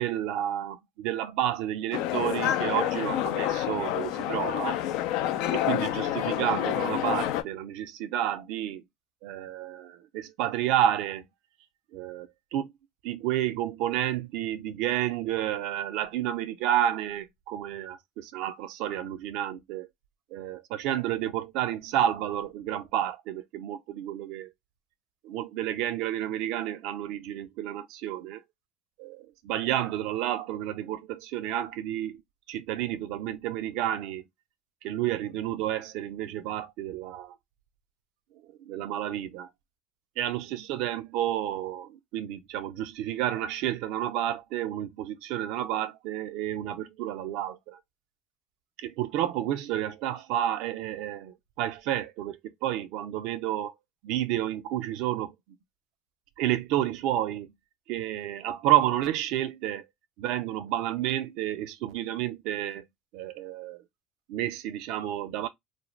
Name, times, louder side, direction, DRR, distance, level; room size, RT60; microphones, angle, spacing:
voice 1, 0.0-4.8 5.5-8.8 9.2-11.3 11.9-12.7 13.0-19.9 20.3-24.5 25.2-28.4 29.0-32.2 32.5-34.2 34.8-37.4 38.6-39.5 40.2-47.8 48.8-53.7 54.0-55.6 56.4-57.5 57.9-59.9 60.2-62.9 63.1-63.8 64.3-65.5, right 12 dB, 70° right, 0.4 m, -30 dB
sound 1, 1.9-7.4, left 12 dB, 70° left, 0.4 m, -28 dB
2.5 x 2.0 x 3.1 m
hypercardioid pair, 75°, 0 cm